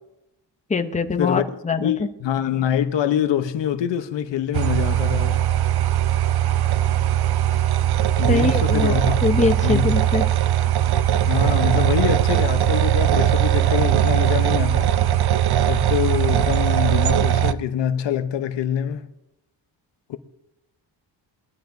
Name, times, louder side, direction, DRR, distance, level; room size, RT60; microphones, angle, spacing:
voice 1, 0.7-2.1 8.3-8.9 9.2-10.2, left 4 dB, 15° left, 0.8 m, -23 dB
voice 2, 1.8-5.4 8.2-9.9 11.2-15.0 15.7-19.1 20.1-20.2, left 9 dB, 75° left, 0.9 m, -25 dB
sound 1, 4.5-17.5, right 11 dB, 60° right, 0.6 m, -20 dB
21.0 x 12.0 x 2.7 m
cardioid pair, 100°, 44 cm